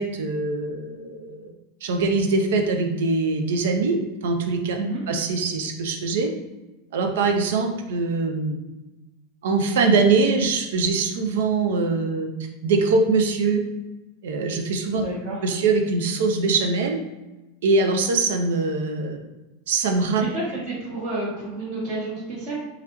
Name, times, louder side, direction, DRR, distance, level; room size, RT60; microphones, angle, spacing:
voice 1, 0.0-1.5 1.8-4.0 4.2-4.8 5.1-6.3 6.9-8.6 9.4-12.3 12.6-13.6 14.2-15.0 15.4-17.0 17.6-19.2 19.7-20.2, right 4 dB, 75° right, 3 dB, 0.5 m, -22 dB
voice 2, 14.9-15.4 20.2-22.6, right 2 dB, 50° right, -11 dB, 1.4 m, -30 dB
3.2 x 2.3 x 3.0 m, 1.1 s
hypercardioid pair, 100°, 0 cm